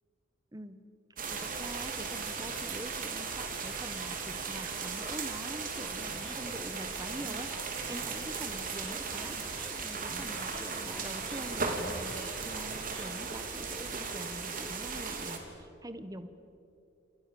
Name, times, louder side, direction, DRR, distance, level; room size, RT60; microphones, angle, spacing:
sound 1, 1.2-15.4, right 4 dB, 45° right, 3.3 m, -37 dB
voice 1, 1.3-9.4 10.0-16.3, right 1 dB, 20° right, 10 dB, 1.2 m, -45 dB
sound 2, 6.0-13.1, equal, 5° left, 1.5 m, -49 dB
30.0 x 27.5 x 7.0 m, 2.7 s
head